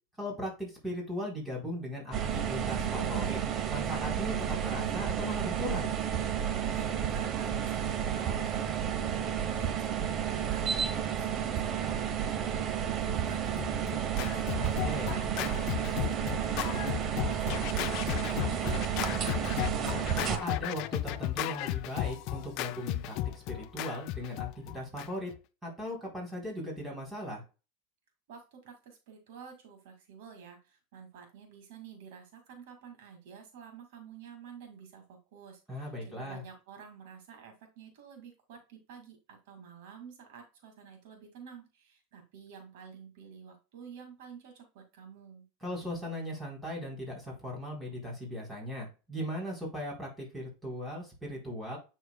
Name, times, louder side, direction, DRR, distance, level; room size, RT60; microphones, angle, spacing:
voice 1, 0.2-3.4 3.7-4.4 4.6-5.9 14.5-15.1 20.3-24.5 24.7-25.3 25.6-27.4 35.7-36.4 45.6-51.8, equal, 10° right, -2 dB, 3.8 m, -38 dB
sound 1, 2.1-20.4, right 8 dB, 35° right, 0.9 m, -31 dB
voice 2, 6.6-12.4 12.6-19.9 28.3-45.5, right 6 dB, 70° right, 4 dB, 2.2 m, -50 dB
Scratching (performance technique), 13.3-25.4, left 15 dB, 50° left, 0.5 m, -35 dB
8.0 x 6.3 x 2.3 m, 0.30 s
supercardioid pair, 135°, 0 cm